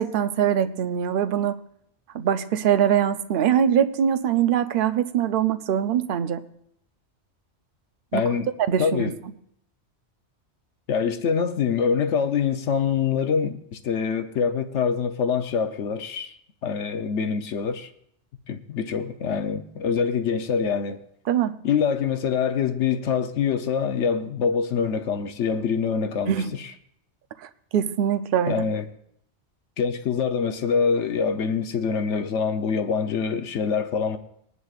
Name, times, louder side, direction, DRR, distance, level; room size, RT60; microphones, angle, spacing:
voice 1, 0.0-1.6 2.1-6.4 8.1-8.3 8.7-9.1 21.3-21.6 26.3-26.5 27.4-28.6, right 9 dB, 55° right, 0.7 m, -23 dB
voice 2, 8.1-8.5 8.8-9.2 10.9-16.3 16.6-17.9 18.5-21.0 21.6-26.7 28.5-28.9 29.8-34.2, left 6 dB, 85° left, 1.1 m, -25 dB
21.0 x 11.0 x 2.4 m
omnidirectional pair, 1.2 m